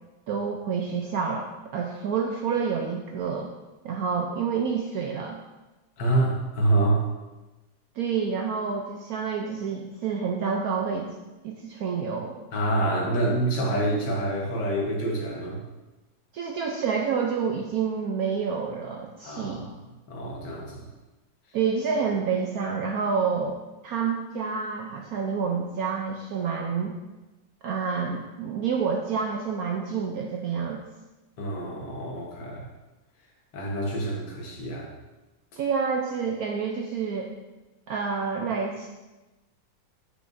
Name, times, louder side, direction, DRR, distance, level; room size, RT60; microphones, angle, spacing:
voice 1, 0.3-3.5 3.8-5.4 8.0-11.1 11.4-12.4 16.3-19.7 21.5-23.6 23.8-27.0 27.6-30.8 35.6-37.3 37.9-38.9, right 6 dB, 70° right, 1 dB, 0.8 m, -28 dB
voice 2, 6.0-7.1 12.5-15.6 19.2-19.8 20.1-20.9 31.4-32.7 33.5-34.9, right 2 dB, 65° left, -1 dB, 1.8 m, -27 dB
8.0 x 5.9 x 2.6 m, 1.1 s
omnidirectional pair, 2.0 m